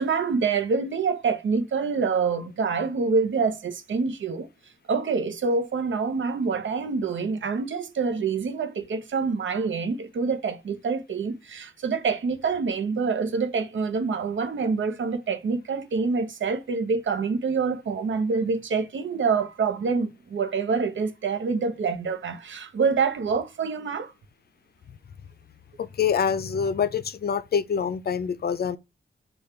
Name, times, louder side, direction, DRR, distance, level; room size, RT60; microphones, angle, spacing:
voice 1, 0.0-4.5 4.9-24.1, right 5 dB, 85° right, 0.7 m, -26 dB
voice 2, 25.8-28.8, left 7 dB, 55° left, 0.4 m, -25 dB
5.0 x 2.3 x 4.3 m
wide cardioid pair, 130°, 19 cm